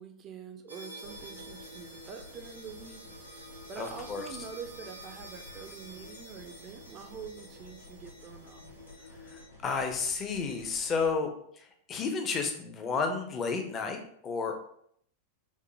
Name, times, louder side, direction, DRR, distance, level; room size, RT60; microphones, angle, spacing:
voice 1, 0.0-3.0 3.3-8.7, right 6 dB, 30° right, 6 dB, 0.4 m, -45 dB
sound 1, 0.7-9.4, equal, 80° right, 0.7 m, -49 dB
sound 2, 1.0-11.1, left 2 dB, 80° left, 1.1 m, -52 dB
voice 2, 3.8-4.2 9.3-11.3 11.6-14.6, left 5 dB, 25° left, 5 dB, 0.6 m, -32 dB
5.2 x 2.1 x 3.2 m, 0.67 s
figure-of-eight pair, 90°, 0 cm